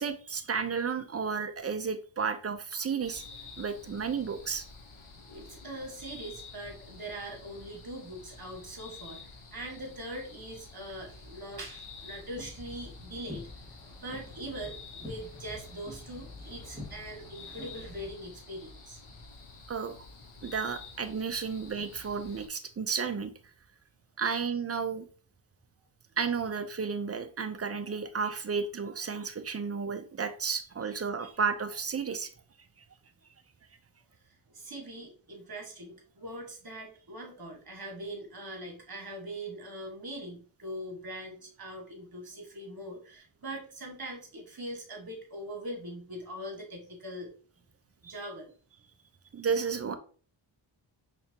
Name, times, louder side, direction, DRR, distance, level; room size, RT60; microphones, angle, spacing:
voice 1, 0.0-3.2 3.6-4.6 19.7-20.0 20.4-23.3 24.2-25.1 26.2-32.3 48.0-48.1 49.3-50.0, right 5 dB, 30° right, 9 dB, 0.5 m, -32 dB
sound 1, 3.0-22.5, left 4 dB, 75° left, 1.1 m, -50 dB
voice 2, 5.3-13.5 14.0-19.0 31.2-31.3 34.5-47.3 48.0-48.5, right 1 dB, 45° right, 2 dB, 1.7 m, -42 dB
sound 2, 12.0-18.1, left 1 dB, 10° left, 1.6 m, -47 dB
4.4 x 3.4 x 2.8 m, 0.41 s
wide cardioid pair, 70°, 50 cm